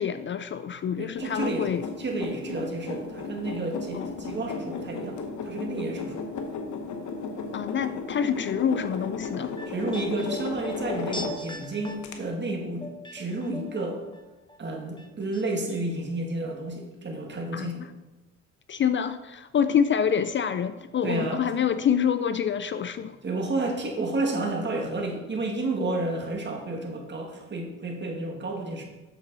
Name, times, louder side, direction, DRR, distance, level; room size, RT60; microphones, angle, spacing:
voice 1, 0.0-1.9 3.9-4.1 7.5-9.6 17.5-17.7 18.7-23.2, left 8 dB, 40° left, 12 dB, 0.4 m, -26 dB
voice 2, 1.0-1.7 2.0-6.3 9.7-14.0 14.6-17.9 21.0-21.5 23.2-28.8, right 2 dB, 35° right, 1 dB, 1.8 m, -31 dB
sound 1, 1.1-11.6 12.0-12.1, left 4 dB, 70° left, 1.2 m, -35 dB
sound 2, 9.0-14.2 14.5-15.4 15.7-15.8, left 1 dB, 15° left, 1.1 m, -40 dB
8.3 x 6.7 x 4.0 m, 1.1 s
cardioid pair, 90°, 30 cm